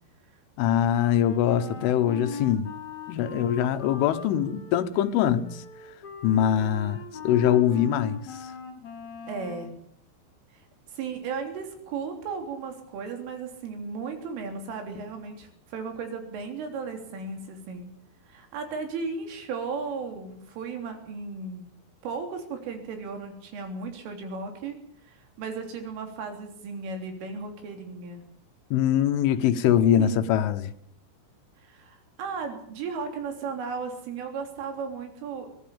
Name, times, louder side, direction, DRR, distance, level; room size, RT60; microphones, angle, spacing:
voice 1, 0.6-2.7 3.1-5.6 6.2-8.5 28.7-30.7, left 10 dB, 80° left, 3.7 m, -23 dB
Wind instrument woodwind instrument, 0.9-9.7, left 4 dB, 40° left, 5.2 m, -40 dB
voice 2, 9.3-9.7 10.5-17.9 18.3-21.7 22.0-28.2 30.0-30.2 31.6-35.5, right 5 dB, 85° right, 5.9 m, -35 dB
23.0 x 17.5 x 7.2 m
omnidirectional pair, 5.6 m